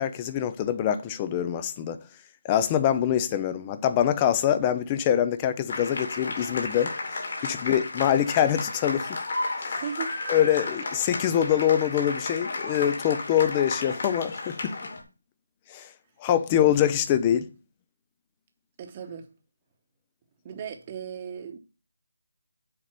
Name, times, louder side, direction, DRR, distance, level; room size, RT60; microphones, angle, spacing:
voice 1, 0.0-2.0 2.4-9.2 9.6-9.8 10.3-14.8 15.7-15.9 16.2-17.5, left 10 dB, 15° left, 0.4 m, -24 dB
sound 1, 5.7-15.0, left 2 dB, 50° left, 2.6 m, -33 dB
voice 2, 9.7-10.2 11.2-11.3 18.8-19.3 20.4-21.6, right 7 dB, 20° right, 1.0 m, -37 dB
7.6 x 5.3 x 5.8 m
figure-of-eight pair, 170°, 0 cm